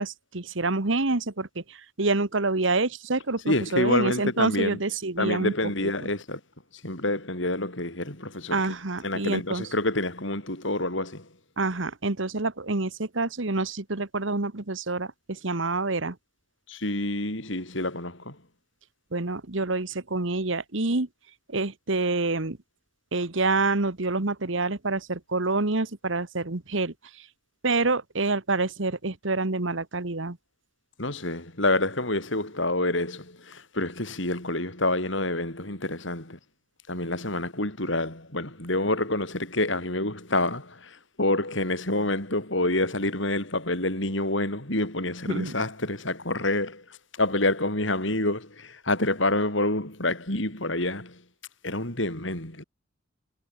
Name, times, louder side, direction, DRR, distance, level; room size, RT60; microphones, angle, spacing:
voice 1, 0.0-5.5 6.0-6.1 8.5-9.7 11.6-16.2 19.1-21.1 21.5-22.6 23.1-27.3 27.6-30.4 45.3-45.5, right 3 dB, 70° right, 1.6 m, -27 dB
voice 2, 3.5-4.8 5.2-6.4 6.8-8.6 9.0-11.3 16.7-18.4 31.0-36.4 36.9-51.2 51.6-52.6, left 2 dB, 70° left, 7.0 m, -27 dB
head